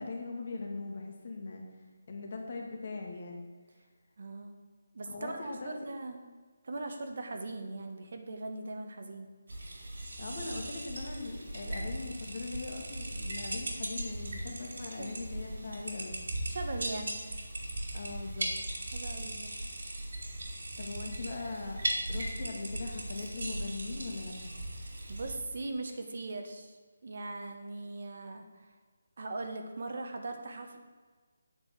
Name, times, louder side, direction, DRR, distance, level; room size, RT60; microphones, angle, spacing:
voice 1, 0.0-3.5 5.1-5.7 10.2-16.2 17.9-18.5 20.8-21.8 22.1-24.5, left 3 dB, 40° left, 1 dB, 1.9 m, -40 dB
voice 2, 4.2-4.5 4.9-6.2 6.6-9.3 15.0-15.2 16.5-17.1 18.9-19.5 25.1-26.8 27.0-28.7 29.2-30.8, right 2 dB, 50° right, 5 dB, 1.3 m, -40 dB
sound 1, 9.5-25.4, right 1 dB, 70° right, 2.6 m, -38 dB
8.5 x 5.4 x 7.6 m, 1.4 s
hypercardioid pair, 175°, 0 cm